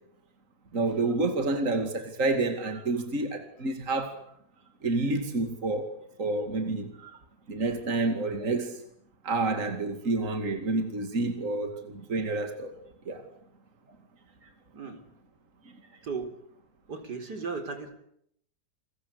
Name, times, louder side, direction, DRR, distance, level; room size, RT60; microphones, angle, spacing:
voice 1, 0.7-4.1 4.8-5.9 6.2-7.2 7.5-8.8 9.2-12.8 13.1-13.2 14.4-14.5, right 3 dB, 50° right, 2.7 m, -29 dB
voice 2, 16.9-18.0, right 4 dB, 80° right, 4.6 m, -35 dB
29.5 x 21.5 x 8.3 m
omnidirectional pair, 1.7 m